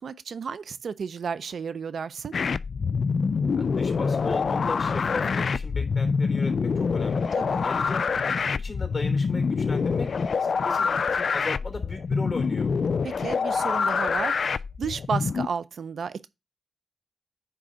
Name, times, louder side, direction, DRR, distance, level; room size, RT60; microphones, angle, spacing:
voice 1, 0.0-2.3 7.3-7.7 13.0-16.3, right 6 dB, 85° right, 0.5 m, -33 dB
sound 1, 2.3-15.5, left 5 dB, 70° left, 0.3 m, -26 dB
voice 2, 3.6-7.3 7.6-10.1 10.4-12.7, left 3 dB, 35° left, 3.1 m, -37 dB
9.2 x 3.7 x 5.0 m
cardioid pair, 65°, 0 cm